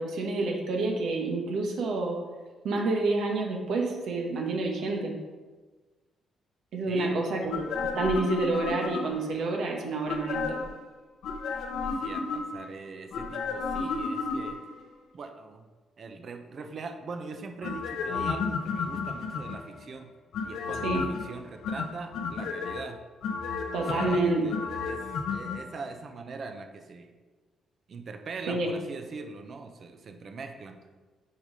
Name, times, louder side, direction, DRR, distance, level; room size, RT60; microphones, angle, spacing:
voice 1, 0.0-2.2 2.6-5.2 6.7-10.6 20.8-21.0 23.7-24.5 28.5-28.7, right 2 dB, 70° right, 1 dB, 1.2 m, -28 dB
voice 2, 6.9-7.4 11.8-14.6 15.1-15.6 16.0-20.1 20.4-23.0 23.8-25.0 25.3-27.1 27.9-30.8, right 4 dB, 50° right, 6 dB, 0.9 m, -41 dB
sound 1, 7.5-9.3 10.1-10.8 11.2-12.7 13.1-14.8 17.6-19.7 20.3-21.2 21.6-22.8 23.2-25.6 25.9-26.0, left 5 dB, 80° left, 0.9 m, -32 dB
7.0 x 5.3 x 5.0 m, 1.3 s
cardioid pair, 90°, 0 cm